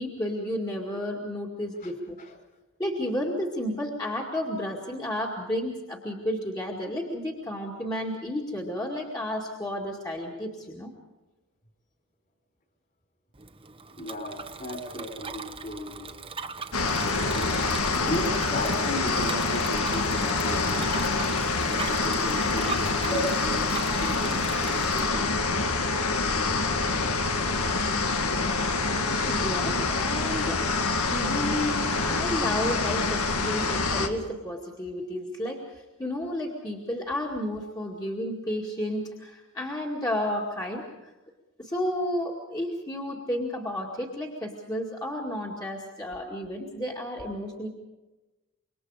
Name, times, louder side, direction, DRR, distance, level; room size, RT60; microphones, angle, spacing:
voice 1, 0.0-2.2 2.8-10.9 28.8-30.7 31.1-41.1 41.6-47.7, left 1 dB, 15° left, -2 dB, 2.2 m, -32 dB
Bicycle, 13.3-25.1, right 4 dB, 25° right, 1.0 m, -39 dB
voice 2, 14.0-16.2 17.4-21.1 21.6-25.3 27.8-27.9 28.6-28.7 29.5-29.8, equal, 40° left, 4 dB, 4.6 m, -35 dB
sound 1, 16.7-34.1, left 3 dB, 85° left, 2.0 m, -26 dB
26.5 x 23.0 x 5.0 m, 1.1 s
head